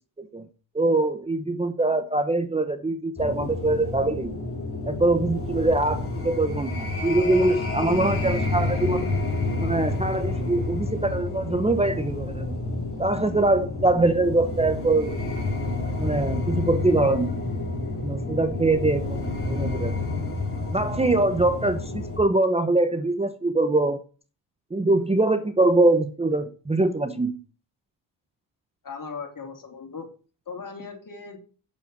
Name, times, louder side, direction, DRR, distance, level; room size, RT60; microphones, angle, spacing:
voice 1, 0.7-4.3 4.9-9.1 9.6-12.6 13.0-15.2 16.0-17.4 18.0-19.9 20.7-24.0 24.7-27.4, right 2 dB, 15° right, 10 dB, 0.8 m, -23 dB
sound 1, 3.2-22.2, left 2 dB, 30° left, 4.1 m, -29 dB
voice 2, 28.8-30.1 30.5-31.4, left 5 dB, 45° left, 2 dB, 3.3 m, -38 dB
8.6 x 6.9 x 6.4 m, 0.38 s
cardioid pair, 85°, 45 cm